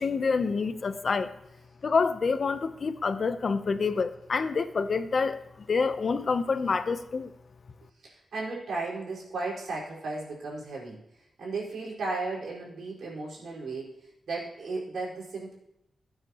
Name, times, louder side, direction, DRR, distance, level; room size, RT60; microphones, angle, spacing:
voice 1, 0.0-1.3 1.8-5.4 5.7-7.3, left 4 dB, 55° left, 11 dB, 0.8 m, -27 dB
voice 2, 8.0-11.0 11.4-13.9 14.3-15.5, right 3 dB, 80° right, -4 dB, 4.7 m, -35 dB
16.5 x 8.9 x 3.0 m, 0.83 s
wide cardioid pair, 95°, 0 cm